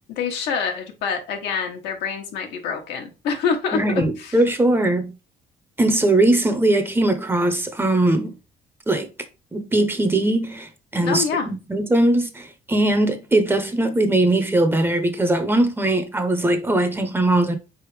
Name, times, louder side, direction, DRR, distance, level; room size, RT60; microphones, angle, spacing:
voice 1, 0.1-4.4 11.0-11.5, left 6 dB, 85° left, 1.0 m, -26 dB
voice 2, 3.7-5.1 5.8-8.4 8.9-9.1 9.5-17.6, right 1 dB, 15° right, 0.7 m, -20 dB
4.3 x 3.5 x 3.1 m
cardioid pair, 110°, 17 cm